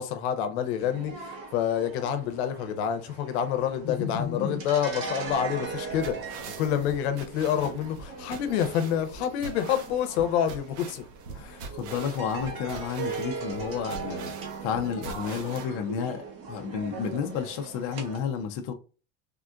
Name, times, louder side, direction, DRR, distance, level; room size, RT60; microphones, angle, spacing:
voice 1, 0.0-11.0, left 9 dB, 75° left, 0.7 m, -28 dB
sound 1, 0.8-18.2, right 4 dB, 45° right, 1.1 m, -39 dB
voice 2, 3.8-4.6 11.3-14.3 14.6-18.7, left 7 dB, 45° left, 0.4 m, -31 dB
sound 2, 5.3-15.7, right 4 dB, 80° right, 0.9 m, -44 dB
3.5 x 2.4 x 2.2 m
supercardioid pair, 150°, 33 cm